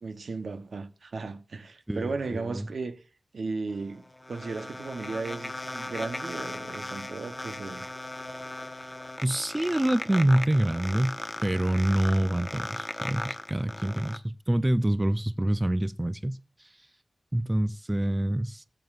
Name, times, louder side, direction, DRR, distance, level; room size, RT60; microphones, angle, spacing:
voice 1, 0.0-3.0 3.3-7.9, right 4 dB, 85° right, 0.9 m, -35 dB
voice 2, 1.9-2.7 9.2-11.2 11.4-16.4 17.3-18.7, right 1 dB, 20° right, 0.4 m, -26 dB
sound 1, 3.7-14.2, left 1 dB, 25° left, 0.7 m, -37 dB
19.0 x 7.7 x 2.5 m
wide cardioid pair, 80°, 0 cm